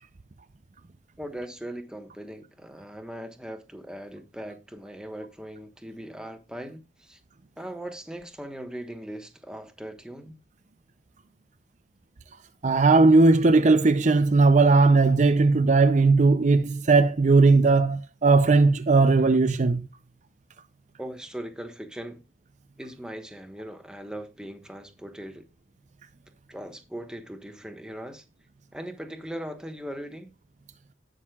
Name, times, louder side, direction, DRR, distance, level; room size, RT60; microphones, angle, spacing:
voice 1, 1.2-7.2 7.6-10.3 21.0-22.2 22.8-25.5 26.5-28.2 28.7-30.3, right 1 dB, 5° right, 1.3 m, -39 dB
voice 2, 12.6-19.9, right 3 dB, 45° right, 0.6 m, -18 dB
18.0 x 6.4 x 2.4 m
head